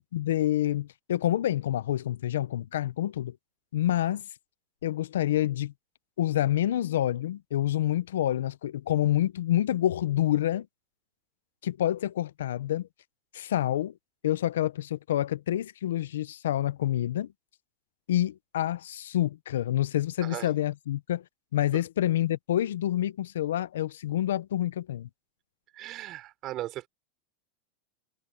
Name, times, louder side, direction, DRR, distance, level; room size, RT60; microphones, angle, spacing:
voice 1, 0.1-3.4 3.7-4.3 4.8-5.7 6.2-10.7 11.6-12.9 13.3-13.9 14.2-17.3 18.1-21.2 21.5-25.1, left 12 dB, 85° left, 0.7 m, -27 dB
voice 2, 25.7-26.9, right 15 dB, 45° right, 5.3 m, -37 dB
hypercardioid pair, 115°, 0 cm